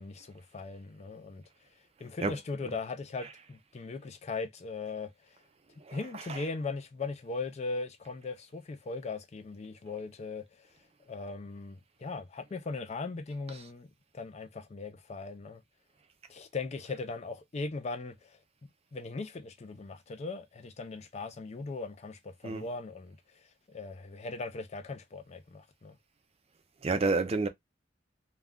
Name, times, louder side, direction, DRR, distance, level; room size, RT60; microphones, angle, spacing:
voice 1, 0.0-1.4 2.0-5.1 5.9-10.5 11.1-13.9 14.1-15.6 16.3-18.4 18.9-23.2 23.7-25.9, left 3 dB, 35° left, 0.4 m, -39 dB
voice 2, 2.2-2.8 3.2-3.3 5.9-6.5 13.5-13.6 22.4-22.7 26.8-27.5, right 3 dB, 30° right, 0.5 m, -31 dB
2.4 x 2.2 x 3.5 m
head